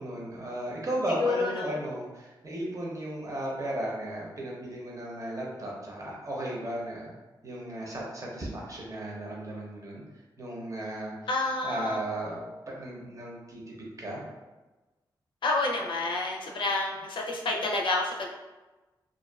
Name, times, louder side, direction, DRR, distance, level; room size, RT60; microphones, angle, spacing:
voice 1, 0.0-7.1 7.4-10.0 10.4-12.4 12.7-14.2, right 1 dB, 40° right, -3 dB, 0.8 m, -35 dB
voice 2, 1.2-1.7 11.3-12.0 15.4-18.3, left 2 dB, 75° left, 0 dB, 0.5 m, -29 dB
2.5 x 2.4 x 2.3 m, 1.2 s
cardioid pair, 65°, 8 cm